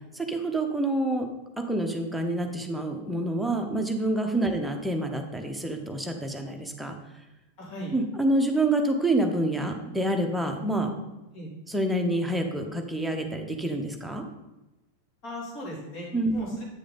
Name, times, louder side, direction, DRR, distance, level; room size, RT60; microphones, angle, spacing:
voice 1, 0.3-1.3 1.7-7.0 7.9-10.9 11.7-14.2 16.1-16.4, right 1 dB, 5° right, 3 dB, 1.0 m, -27 dB
voice 2, 7.6-7.9 11.3-11.5 15.2-16.6, equal, 40° left, -4 dB, 3.3 m, -38 dB
8.8 x 6.6 x 4.0 m, 1.0 s
figure-of-eight pair, 90°, 0 cm